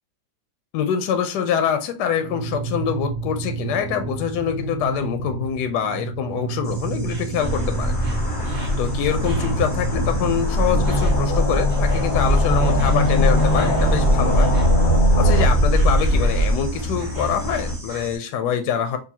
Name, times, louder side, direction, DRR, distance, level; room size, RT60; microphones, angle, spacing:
voice 1, 0.7-8.0 8.8-14.5 15.2-19.0, left 8 dB, 75° left, 8 dB, 1.1 m, -25 dB
sound 1, 2.2-10.2, right 4 dB, 80° right, 1.3 m, -31 dB
Insect, 6.6-18.2, right 1 dB, 25° right, 1.5 m, -38 dB
sound 2, 7.4-17.8, equal, 35° left, 0.9 m, -20 dB
5.3 x 2.6 x 2.8 m, 0.33 s
omnidirectional pair, 1.9 m